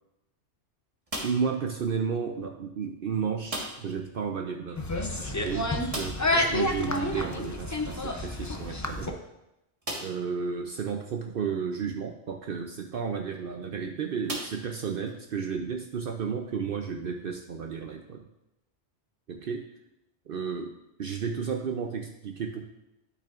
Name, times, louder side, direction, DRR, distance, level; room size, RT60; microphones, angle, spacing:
sound 1, 1.1-1.6 3.5-4.0 4.3-4.4 4.7-4.8 5.9-6.4 8.2-8.3 8.9-9.0 9.8-10.3 11.0-11.1 13.1-13.4 14.2-15.1, right 1 dB, 30° right, 1.5 m, -37 dB
voice 1, 1.2-4.8 5.2-6.2 6.5-9.1 10.0-18.3 19.3-19.6 20.3-20.7 21.0-22.6, right 6 dB, 55° right, 3 dB, 0.7 m, -32 dB
sound 2, 4.7-9.1, left 1 dB, 25° left, 0.4 m, -29 dB
12.5 x 5.8 x 2.5 m, 0.89 s
omnidirectional pair, 1.2 m